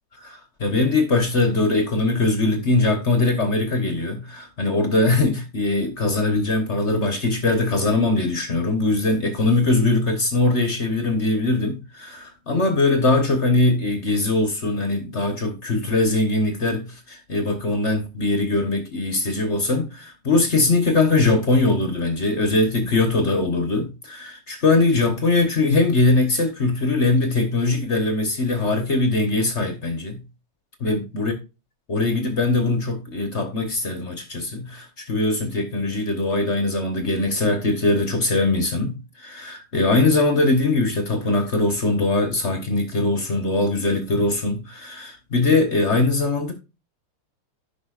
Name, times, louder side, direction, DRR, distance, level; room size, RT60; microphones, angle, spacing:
voice 1, 0.1-30.2 30.8-31.3 31.9-46.5, left 2 dB, 40° left, 1.1 m, -21 dB
16.0 x 5.5 x 2.4 m
omnidirectional pair, 2.4 m